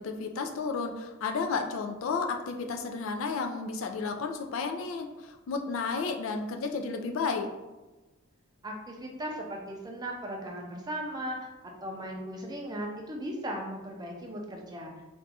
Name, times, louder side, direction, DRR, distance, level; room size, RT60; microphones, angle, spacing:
voice 1, 0.0-7.5, left 4 dB, 75° left, 4 dB, 0.4 m, -32 dB
voice 2, 8.6-14.9, right 1 dB, 20° right, 0 dB, 0.4 m, -37 dB
2.6 x 2.3 x 4.0 m, 1.1 s
head